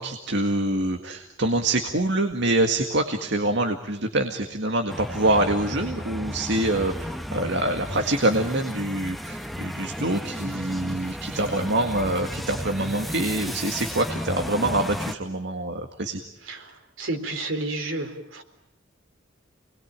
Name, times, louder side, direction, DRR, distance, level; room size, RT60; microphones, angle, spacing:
voice 1, 0.0-16.2, right 1 dB, 60° right, 6 dB, 1.9 m, -25 dB
sound 1, 4.9-15.2, equal, ahead, 0.9 m, -33 dB
voice 2, 16.4-18.4, right 2 dB, 85° right, 4 dB, 4.1 m, -31 dB
28.5 x 21.0 x 9.0 m, 0.90 s
head